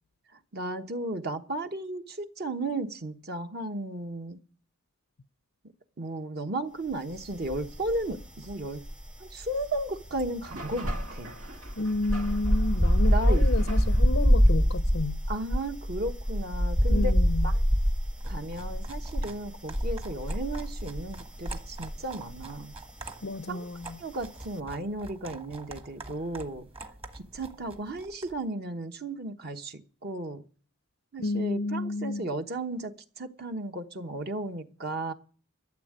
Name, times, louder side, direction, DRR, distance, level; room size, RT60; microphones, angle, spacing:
voice 1, 0.5-4.4 6.0-8.9 9.2-11.4 13.1-13.5 15.3-17.2 17.4-17.6 18.3-22.7 23.5-23.7 24.0-26.6 27.1-30.5 31.1-35.1, right 2 dB, 50° right, 1.1 m, -34 dB
sound 1, 7.4-8.2 8.5-22.0 22.3-22.6, equal, 5° right, 0.6 m, -25 dB
sound 2, 10.4-14.4, right 2 dB, 85° right, 2.0 m, -44 dB
voice 2, 11.8-15.2 16.9-17.5 23.2-24.0 31.2-32.3, left 2 dB, 60° left, 0.6 m, -31 dB
sound 3, 18.1-28.4, right 3 dB, 25° right, 1.3 m, -46 dB
13.0 x 7.4 x 9.1 m
head